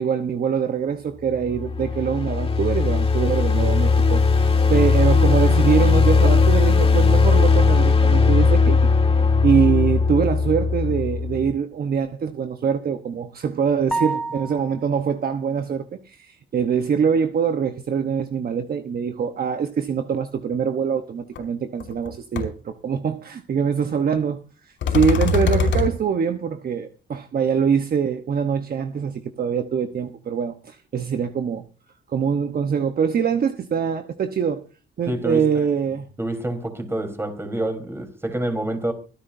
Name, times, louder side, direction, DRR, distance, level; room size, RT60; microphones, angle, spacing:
voice 1, 0.0-4.2 4.7-8.8 9.4-24.4 24.9-31.6 32.1-34.6 35.0-36.1, right 7 dB, 50° right, 1.1 m, -23 dB
sound 1, 1.3-11.5, left 4 dB, 30° left, 2.1 m, -18 dB
sound 2, 13.9-15.0, right 3 dB, 5° left, 1.1 m, -28 dB
sound 3, 21.4-21.5 21.8-22.1 22.4-22.5 24.8-25.9, left 5 dB, 75° left, 4.8 m, -21 dB
voice 2, 35.1-35.5 36.2-38.9, right 1 dB, 10° right, 4.0 m, -27 dB
25.0 x 10.0 x 2.7 m
cardioid pair, 90°, 20 cm